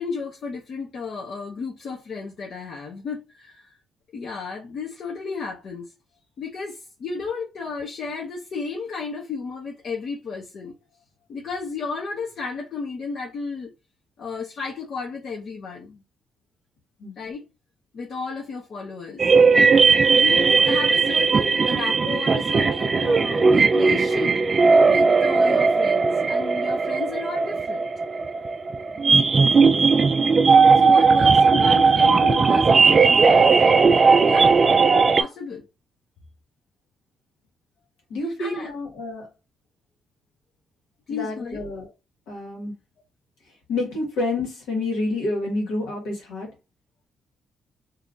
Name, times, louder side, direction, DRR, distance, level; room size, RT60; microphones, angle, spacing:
voice 1, 0.0-3.8 4.1-5.9 6.4-10.7 11.3-13.7 14.2-16.0 17.2-17.4 17.9-19.2 20.1-24.4 24.9-27.8 30.1-30.3 30.7-34.6 35.1-35.7 38.2-38.7 41.1-41.7, left 5 dB, 60° left, 0.8 m, -33 dB
sound 1, 19.2-35.2, right 4 dB, 35° right, 0.3 m, -17 dB
voice 2, 38.1-39.3 41.1-41.9 42.3-42.7 43.7-46.5, left 2 dB, 90° left, 1.6 m, -28 dB
2.8 x 2.4 x 3.8 m
cardioid pair, 90°, 0 cm